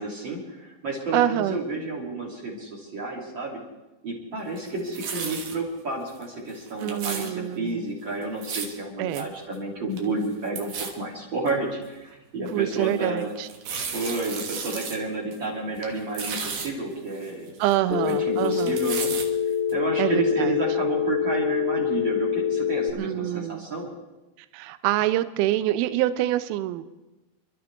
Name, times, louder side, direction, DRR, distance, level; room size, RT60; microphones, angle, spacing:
voice 1, 0.0-3.6 4.0-13.3 13.9-17.5 17.9-19.1 19.7-23.9, right 2 dB, 30° right, -2 dB, 3.0 m, -31 dB
voice 2, 1.1-1.6 6.8-7.8 9.0-9.3 12.5-13.5 17.6-18.8 20.0-20.6 23.0-23.7 24.5-26.9, right 14 dB, 85° right, 13 dB, 2.2 m, -26 dB
sound 1, 4.6-5.6 6.1-6.2 6.5-7.3 8.2-8.8 9.1-9.2 9.5-9.6 9.9-10.3 10.6-10.9 11.5-11.6 12.1-12.2 13.4-15.0 15.3-15.4 15.8-16.7 17.2-18.1 18.4-19.3 19.7-19.8, right 5 dB, 60° right, 2.1 m, -34 dB
Telephone, 17.9-22.9, left 8 dB, 75° left, 2.5 m, -25 dB
28.0 x 13.0 x 3.5 m, 1.1 s
omnidirectional pair, 5.2 m